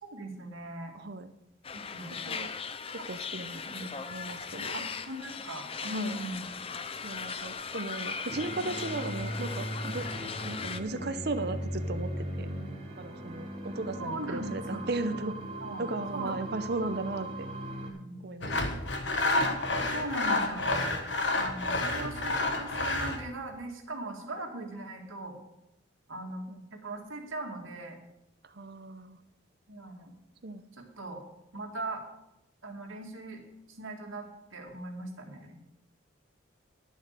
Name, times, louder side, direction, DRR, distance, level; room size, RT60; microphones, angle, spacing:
voice 1, 0.0-0.9 1.9-2.2 3.0-3.1 3.7-3.9 4.7-6.4 14.0-14.8 15.6-15.8 16.1-16.3 17.9-18.2 19.3-19.5 19.9-20.9 21.3-25.4 26.1-28.0 29.7-30.1 30.8-31.2 31.5-32.0 32.6-33.4 33.7-34.3 34.5-35.5, right 2 dB, 90° right, 2 dB, 2.3 m, -39 dB
voice 2, 0.9-1.3 2.1-2.5 2.9-4.8 5.8-6.2 7.0-10.1 10.4-12.5 13.0-15.3 15.8-17.5 18.2-18.6 26.5-26.6 28.4-29.2 30.4-30.6, right 2 dB, 55° right, 10 dB, 0.7 m, -36 dB
sound 1, 1.6-10.8, left 5 dB, 30° left, 0.5 m, -38 dB
sound 2, 8.3-17.9, right 1 dB, 30° right, 2.3 m, -38 dB
Sawing, 18.4-23.2, left 2 dB, 65° left, 1.5 m, -29 dB
11.0 x 7.4 x 6.7 m, 0.85 s
head